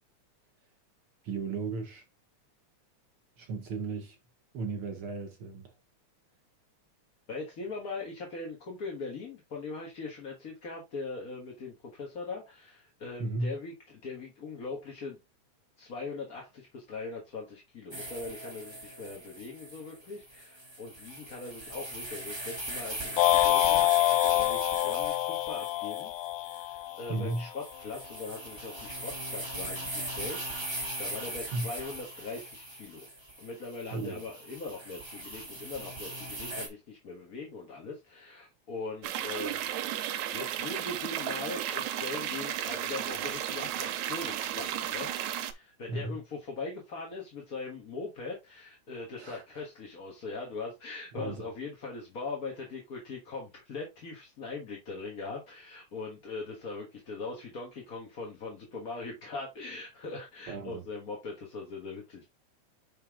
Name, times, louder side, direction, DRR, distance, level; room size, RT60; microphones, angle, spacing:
voice 1, 1.2-2.0 3.4-4.2 4.5-5.7 13.2-13.5 27.1-27.5 28.9-29.0 31.4-31.7 33.9-34.2 45.9-46.2 49.2-49.6 51.2-51.5 60.5-60.8, right 3 dB, 65° right, 1.4 m, -35 dB
voice 2, 7.3-15.2 15.8-23.9 24.2-26.1 26.4-33.1 33.4-45.1 45.5-62.2, left 3 dB, 40° left, 1.4 m, -41 dB
sound 1, 17.9-36.7, right 1 dB, 10° right, 1.9 m, -40 dB
sound 2, 23.2-27.5, left 19 dB, 80° left, 1.6 m, -26 dB
sound 3, 39.0-45.5, right 11 dB, 85° right, 2.1 m, -34 dB
5.7 x 5.4 x 3.6 m
omnidirectional pair, 3.3 m